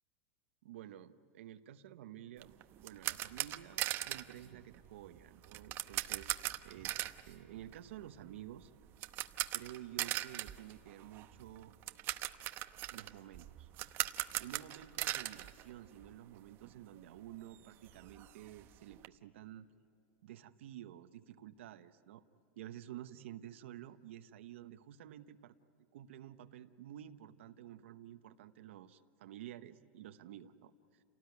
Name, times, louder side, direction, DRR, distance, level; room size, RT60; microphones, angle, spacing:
voice 1, 0.6-2.5 2.8-8.7 9.5-11.8 12.9-13.7 14.4-19.7 20.2-22.2 22.6-31.0, right 12 dB, 80° right, 8 dB, 1.0 m, -51 dB
sound 1, 2.4-16.4 16.6-16.8 17.2-17.3 17.5-19.1, right 15 dB, 35° right, 0.9 m, -41 dB
29.5 x 18.0 x 9.5 m, 2.6 s
supercardioid pair, 155°, 7 cm